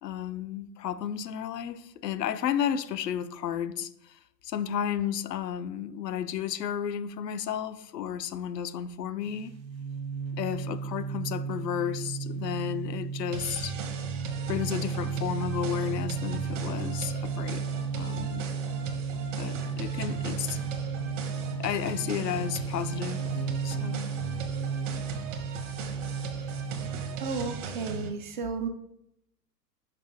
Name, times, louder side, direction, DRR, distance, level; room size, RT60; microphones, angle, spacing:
voice 1, 0.0-9.6 10.4-13.7 14.5-17.6 17.9-18.5 19.4-20.6 21.6-23.3 23.6-24.1, left 9 dB, 75° left, 0.6 m, -33 dB
sound 1, 9.2-27.5, right 5 dB, 90° right, 0.7 m, -34 dB
sound 2, 13.3-28.1, right 4 dB, 50° right, 1.2 m, -38 dB
voice 2, 27.2-28.7, right 5 dB, 30° right, 0.4 m, -33 dB
5.9 x 5.1 x 3.3 m
figure-of-eight pair, 110°, 50 cm